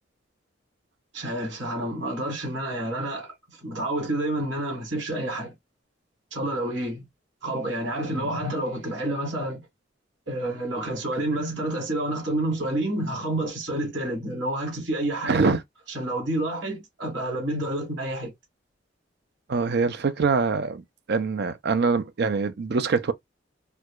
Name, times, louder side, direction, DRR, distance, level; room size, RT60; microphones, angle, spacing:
voice 1, 1.1-5.5 6.3-7.0 7.4-9.7 10.3-15.6 15.9-18.3, right 1 dB, 80° right, 2.1 m, -29 dB
voice 2, 15.3-15.6 19.5-20.8 21.1-23.1, right 4 dB, 60° right, 0.5 m, -24 dB
4.5 x 2.3 x 2.3 m
head